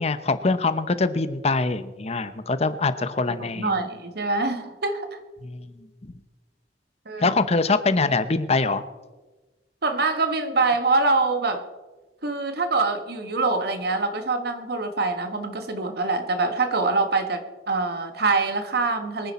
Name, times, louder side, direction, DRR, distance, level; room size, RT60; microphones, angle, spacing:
voice 1, 0.0-3.9 5.4-5.7 7.2-8.8, left 3 dB, 35° left, 12 dB, 0.7 m, -23 dB
voice 2, 3.2-5.2 7.0-7.4 9.8-11.6 12.2-19.3, right 3 dB, 60° right, 8 dB, 1.4 m, -25 dB
23.0 x 10.0 x 4.2 m, 1.2 s
head